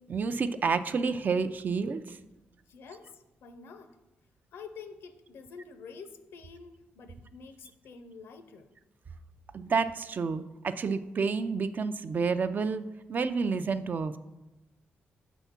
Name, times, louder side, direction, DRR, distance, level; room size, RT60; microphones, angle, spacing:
voice 1, 0.1-2.2 9.5-14.2, right 5 dB, 50° right, 11 dB, 0.4 m, -29 dB
voice 2, 2.7-4.0 4.5-8.7, left 5 dB, 80° left, 8 dB, 0.6 m, -48 dB
6.9 x 3.6 x 5.8 m, 1.0 s
cardioid pair, 75°, 4 cm